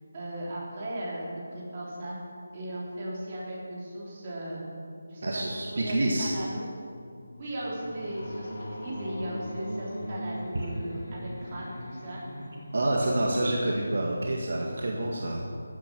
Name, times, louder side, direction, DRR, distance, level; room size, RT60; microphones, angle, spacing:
voice 1, 0.1-2.2 2.5-4.6 5.1-5.4 5.7-6.6 7.4-8.5 8.8-12.2, right 1 dB, 25° right, -6 dB, 3.4 m, -36 dB
voice 2, 5.2-6.3 10.5-10.7 12.7-15.5, right 1 dB, 55° right, -2 dB, 1.8 m, -28 dB
sound 1, 6.7-14.0, equal, 75° left, 3.8 m, -40 dB
14.5 x 9.3 x 6.1 m, 2.3 s
figure-of-eight pair, 175°, 0 cm